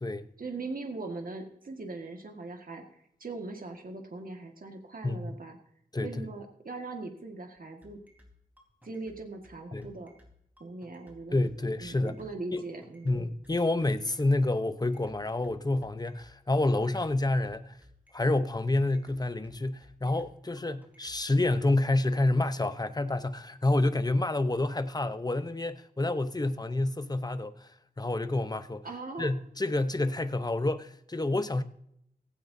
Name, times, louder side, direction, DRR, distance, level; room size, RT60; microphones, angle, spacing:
voice 1, 0.4-2.8 3.2-5.6 6.0-8.0 8.8-10.1 10.6-11.5 11.8-13.2 28.8-29.3, right 3 dB, 65° right, 1.8 m, -40 dB
voice 2, 5.0-5.4 5.9-6.3 9.7-9.9 11.3-12.2 12.5-12.7 13.0-17.8 18.1-27.7 28.0-28.8 29.2-31.6, left 2 dB, 25° left, 0.8 m, -28 dB
sound 1, 7.6-21.6, left 1 dB, 10° right, 4.1 m, -57 dB
16.5 x 16.0 x 2.7 m
wide cardioid pair, 85°, 16 cm